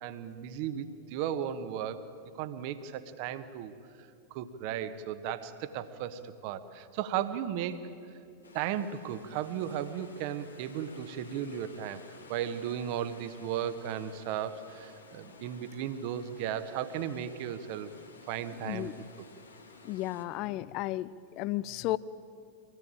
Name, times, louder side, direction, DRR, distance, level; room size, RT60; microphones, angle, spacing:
voice 1, 0.0-2.0 2.3-3.7 4.3-7.9 8.5-12.0 12.3-17.9 18.3-18.9 19.2-19.3, right 9 dB, 45° right, 11 dB, 1.3 m, -35 dB
sound 1, 8.4-20.2, left 3 dB, 75° left, 2.3 m, -53 dB
voice 2, 19.8-22.0, left 16 dB, 40° left, 18 dB, 0.6 m, -33 dB
25.0 x 17.5 x 8.9 m, 2.5 s
figure-of-eight pair, 90°, 0 cm